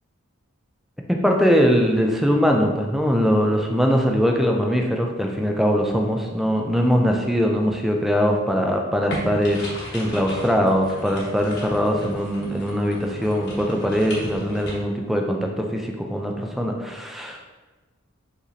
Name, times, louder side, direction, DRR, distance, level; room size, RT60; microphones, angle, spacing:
voice 1, 1.1-9.7 9.9-17.5, equal, ahead, 1 dB, 0.3 m, -21 dB
sound 1, 9.1-14.7, equal, 55° left, 1.1 m, -36 dB
4.8 x 3.1 x 2.7 m, 1.2 s
head